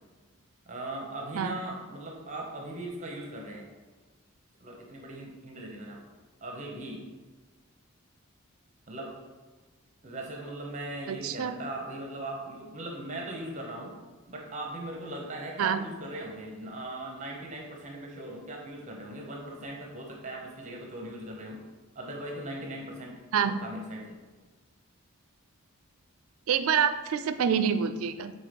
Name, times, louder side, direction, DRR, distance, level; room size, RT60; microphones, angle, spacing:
voice 1, 0.7-3.7 4.6-6.0 6.4-7.0 8.9-9.1 10.0-13.9 14.3-21.6 21.9-23.2 23.5-24.2, right 1 dB, 35° right, 0 dB, 0.9 m, -39 dB
voice 2, 11.1-11.5 15.6-15.9 23.3-23.6 26.5-28.3, right 7 dB, 75° right, 11 dB, 0.4 m, -27 dB
4.6 x 4.2 x 5.1 m, 1.3 s
head